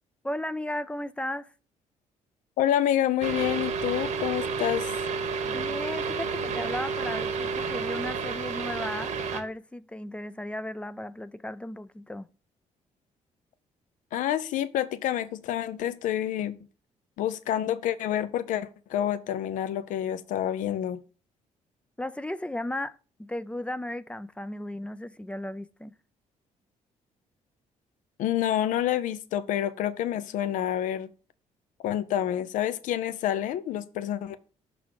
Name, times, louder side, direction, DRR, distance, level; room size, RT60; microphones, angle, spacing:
voice 1, 0.2-1.5 5.4-12.3 22.0-25.9, left 1 dB, 10° left, 0.3 m, -35 dB
voice 2, 2.6-4.9 14.1-16.6 17.2-21.0 28.2-31.1 31.8-34.4, left 11 dB, 80° left, 0.5 m, -28 dB
sound 1, 3.2-9.4, right 5 dB, 65° right, 1.1 m, -30 dB
6.0 x 4.0 x 4.7 m
cardioid pair, 95°, 13 cm